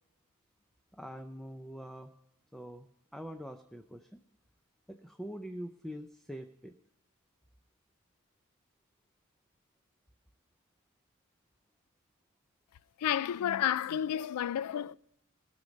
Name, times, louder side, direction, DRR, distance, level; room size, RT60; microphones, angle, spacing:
voice 1, 0.9-2.1 2.5-2.9 3.1-4.2 4.9-6.7, equal, ahead, 0.5 m, -44 dB
voice 2, 13.0-14.9, left 10 dB, 85° left, 0.3 m, -31 dB
19.0 x 6.5 x 5.2 m
head